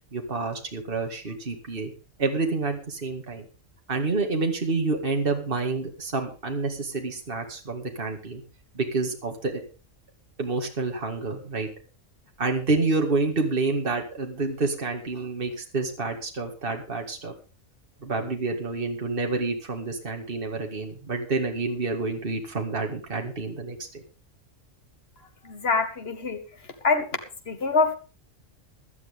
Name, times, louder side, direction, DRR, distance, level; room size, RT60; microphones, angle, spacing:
voice 1, 0.1-1.9 2.2-3.5 3.9-8.4 8.7-9.6 10.4-11.7 12.4-17.3 18.0-24.0, right 3 dB, 45° right, 3 dB, 2.2 m, -28 dB
voice 2, 25.4-26.4 26.8-27.1 27.5-27.9, left 4 dB, 50° left, 6 dB, 2.1 m, -24 dB
17.0 x 12.0 x 3.6 m, 0.33 s
omnidirectional pair, 1.3 m